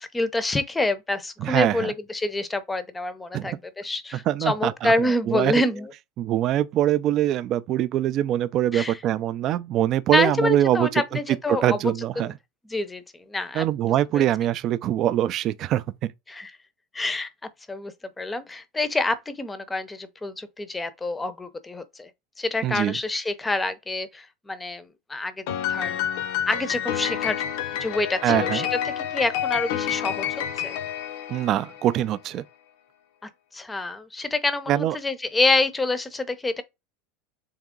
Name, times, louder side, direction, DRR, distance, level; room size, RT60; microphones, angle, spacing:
voice 1, 0.0-5.9 8.7-9.0 10.1-11.8 12.2-12.3 12.7-13.0 13.3-13.6 14.1-14.2 16.3-16.5 16.9-17.3 17.7-22.1 22.4-26.0 26.5-27.4 27.8-28.7 29.1-30.8 33.5-36.6, left 2 dB, 15° left, 0.6 m, -27 dB
voice 2, 1.4-1.9 3.3-3.6 4.3-4.9 5.3-5.5 6.2-11.0 11.5-12.3 13.5-16.1 22.6-23.0 28.2-28.7 31.3-32.4 34.7-35.0, right 12 dB, 45° right, 0.3 m, -23 dB
Piano, 25.5-32.0, left 10 dB, 70° left, 0.5 m, -29 dB
3.5 x 2.9 x 3.7 m
hypercardioid pair, 100°, 0 cm